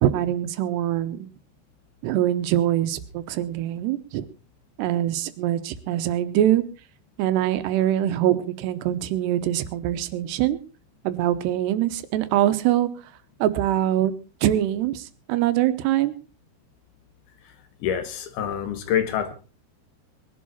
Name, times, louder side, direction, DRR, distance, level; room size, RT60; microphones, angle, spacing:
voice 1, 0.0-1.3 2.0-4.3 4.8-6.6 7.2-10.6 11.0-12.9 13.4-14.1 14.4-16.1, right 12 dB, 85° right, 11 dB, 3.1 m, -23 dB
voice 2, 17.8-19.3, left 9 dB, 75° left, 9 dB, 3.4 m, -26 dB
21.0 x 11.0 x 4.2 m, 0.34 s
omnidirectional pair, 4.7 m